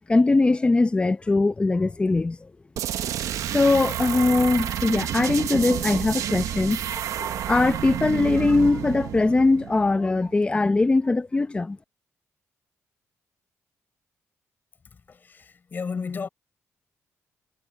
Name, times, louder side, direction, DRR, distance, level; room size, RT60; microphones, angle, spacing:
voice 1, 0.1-2.5 3.5-11.8, left 3 dB, 20° left, 1.0 m, -21 dB
sound 1, 2.8-10.3, right 11 dB, 80° right, 0.9 m, -30 dB
voice 2, 14.8-16.3, left 5 dB, 35° left, 4.4 m, -34 dB
cardioid pair, 125°, 5 cm